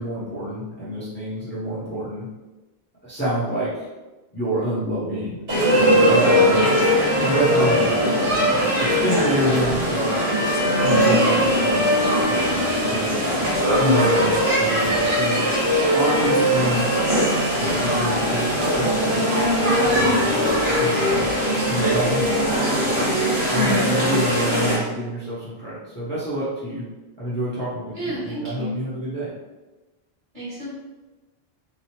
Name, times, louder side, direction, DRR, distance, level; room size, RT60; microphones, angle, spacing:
voice 1, 0.0-2.3 3.0-3.9 4.3-5.4 5.7-6.7 7.2-10.1 10.6-13.3 13.8-15.6 15.9-16.9 17.6-19.2 19.6-21.2 21.7-22.3 22.8-23.2 23.5-26.8 27.2-29.3, right 1 dB, 15° left, -10 dB, 0.6 m, -27 dB
sound 1, 5.5-24.8, equal, 75° right, 1.5 m, -20 dB
voice 2, 23.5-24.5 27.9-28.8 30.3-30.7, left 1 dB, 50° right, -8 dB, 1.3 m, -28 dB
3.1 x 2.0 x 2.9 m, 1.1 s
omnidirectional pair, 1.1 m